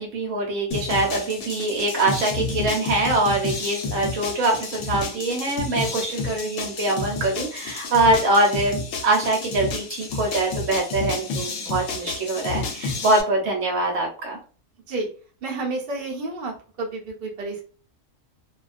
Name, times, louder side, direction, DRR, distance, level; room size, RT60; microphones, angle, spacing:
voice 1, 0.0-14.4, right 2 dB, 75° right, 0 dB, 1.1 m, -23 dB
sound 1, 0.7-13.2, left 4 dB, 75° left, 0.9 m, -31 dB
voice 2, 15.4-16.5 16.8-17.6, right 2 dB, 50° right, -2 dB, 0.9 m, -30 dB
2.4 x 2.2 x 2.4 m, 0.39 s
omnidirectional pair, 1.4 m